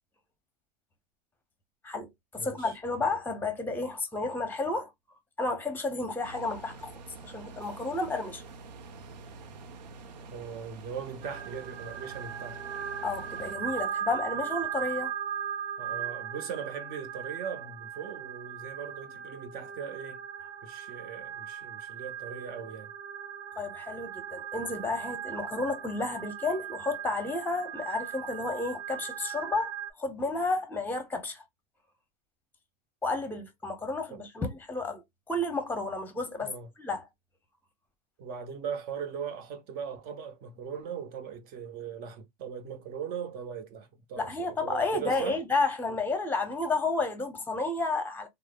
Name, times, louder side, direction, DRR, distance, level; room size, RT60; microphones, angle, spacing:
voice 1, 1.8-4.9 5.4-6.9 7.2-8.4 13.0-15.1 23.6-29.7 30.0-31.4 33.0-37.1 44.2-48.3, left 3 dB, 10° left, 0.9 m, -31 dB
voice 2, 2.4-2.7 10.3-12.6 15.8-20.2 20.6-22.9 34.1-34.2 36.4-36.7 38.2-45.4, right 7 dB, 45° right, 0.8 m, -39 dB
sound 1, 6.2-13.6, right 3 dB, 85° right, 0.6 m, -47 dB
sound 2, 11.2-29.9, right 9 dB, 20° right, 0.5 m, -38 dB
3.2 x 2.0 x 2.3 m
hypercardioid pair, 110°, 21 cm